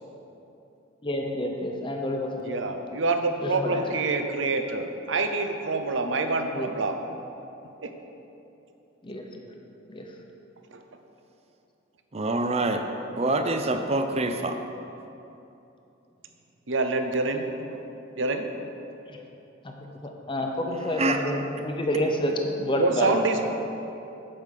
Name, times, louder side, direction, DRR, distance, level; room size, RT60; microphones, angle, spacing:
voice 1, 1.0-2.4 3.4-3.8 6.5-6.7 9.0-9.2 9.9-10.1 19.1-19.2 19.6-23.1, left 1 dB, 25° left, 2 dB, 0.8 m, -29 dB
voice 2, 2.4-7.0 7.8-7.9 10.7-10.8 16.7-17.8 18.2-18.4 22.8-23.5, right 3 dB, 75° right, 6 dB, 0.8 m, -26 dB
voice 3, 12.1-12.8 13.2-14.6 20.8-21.2, right 2 dB, 35° right, 6 dB, 0.6 m, -26 dB
8.6 x 5.2 x 6.6 m, 2.9 s
head